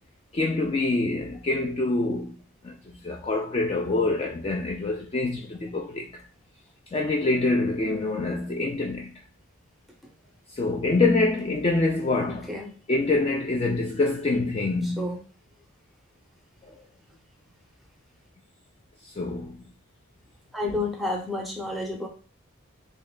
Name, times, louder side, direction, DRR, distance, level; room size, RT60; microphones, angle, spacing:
voice 1, 0.3-2.4 2.6-6.2 6.9-9.1 10.5-12.5 12.9-15.1 16.6-16.8 19.0-19.6, left 2 dB, 25° left, 0.3 m, -26 dB
voice 2, 12.3-12.7 14.8-15.2 20.5-22.1, left 2 dB, ahead, 0.7 m, -30 dB
3.2 x 2.6 x 3.7 m
head